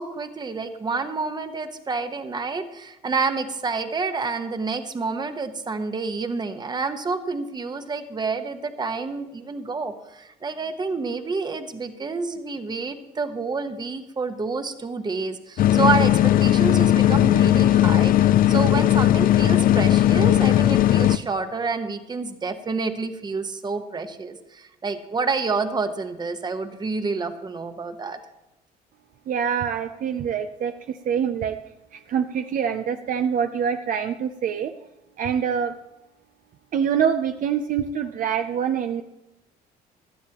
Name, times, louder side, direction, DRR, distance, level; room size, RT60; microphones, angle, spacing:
voice 1, 0.0-28.2, right 4 dB, 25° right, 8 dB, 1.1 m, -28 dB
sound 1, 15.6-21.2, left 12 dB, 55° left, 0.5 m, -17 dB
voice 2, 29.3-31.6 31.9-34.7 35.2-35.7 36.7-39.0, right 7 dB, 55° right, 7 dB, 0.6 m, -25 dB
17.5 x 12.0 x 3.0 m, 0.95 s
cardioid pair, 110°, 17 cm